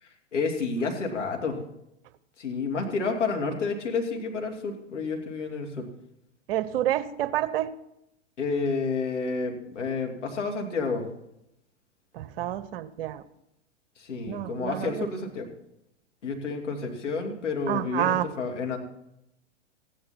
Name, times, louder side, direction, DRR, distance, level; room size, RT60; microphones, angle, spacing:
voice 1, 0.0-1.6 2.4-5.9 8.4-11.1 14.0-15.5 16.2-18.8, left 4 dB, 80° left, 2 dB, 2.9 m, -30 dB
voice 2, 6.5-7.7 12.1-13.2 14.3-15.1 17.7-18.3, right 12 dB, 55° right, 14 dB, 0.9 m, -28 dB
15.0 x 10.5 x 4.4 m, 0.83 s
hypercardioid pair, 115°, 36 cm